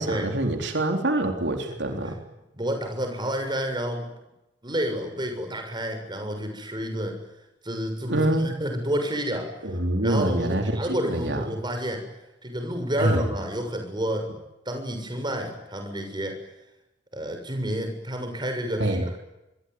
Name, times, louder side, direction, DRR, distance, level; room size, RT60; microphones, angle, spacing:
voice 1, 0.0-2.2 8.1-8.5 9.6-11.4 13.0-13.3 18.8-19.1, right 1 dB, 75° right, 4 dB, 3.8 m, -25 dB
voice 2, 2.5-4.1 4.6-7.2 7.6-9.6 10.0-12.1 12.4-14.3 14.6-16.5 17.1-19.2, equal, 25° right, 5 dB, 6.8 m, -30 dB
27.0 x 22.5 x 9.5 m, 0.94 s
head